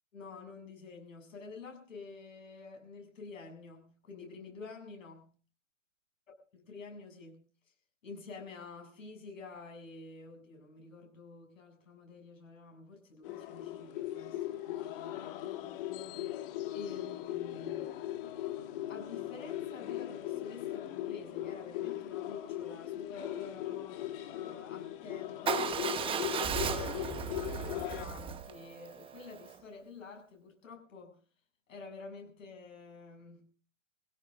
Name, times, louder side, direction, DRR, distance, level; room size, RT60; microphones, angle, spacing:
voice 1, 0.1-5.2 6.5-7.4 8.0-15.3 16.7-18.1 18.9-23.8 24.3-31.2 31.7-33.5, left 4 dB, 80° left, 7.7 m, -49 dB
sound 1, 13.2-28.0, left 13 dB, 45° left, 2.1 m, -39 dB
Motorcycle / Engine starting / Idling, 25.5-29.6, right 7 dB, 15° right, 1.0 m, -36 dB
26.0 x 16.5 x 2.6 m
hypercardioid pair, 135°, 39 cm